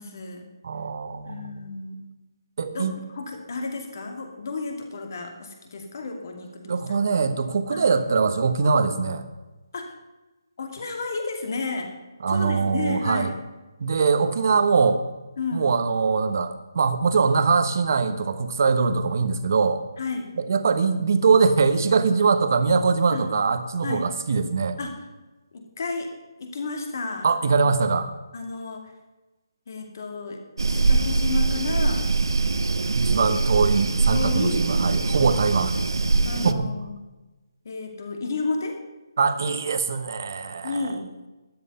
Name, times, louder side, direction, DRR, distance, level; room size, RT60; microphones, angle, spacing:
voice 1, 0.0-0.5 1.3-2.0 2.7-7.0 7.7-8.0 9.7-9.9 10.6-11.9 12.3-13.4 15.4-15.7 20.0-20.3 23.1-23.3 23.8-24.1 24.8-24.9 25.5-26.1 26.4-27.3 28.3-28.9 29.7-32.1 33.1-33.4 34.1-34.7 36.2-37.0 37.6-38.8 40.6-41.1, left 3 dB, 45° left, 3 dB, 2.5 m, -32 dB
voice 2, 0.6-1.6 2.6-2.9 6.7-9.2 12.2-13.3 13.8-15.0 15.5-19.8 20.4-24.8 27.2-28.1 32.9-35.7 36.4-36.7 39.2-40.8, right 5 dB, 45° right, 10 dB, 1.1 m, -22 dB
sound 1, 30.6-36.5, right 3 dB, 85° right, 1.0 m, -23 dB
12.5 x 11.0 x 5.5 m, 1.1 s
hypercardioid pair, 170°, 2 cm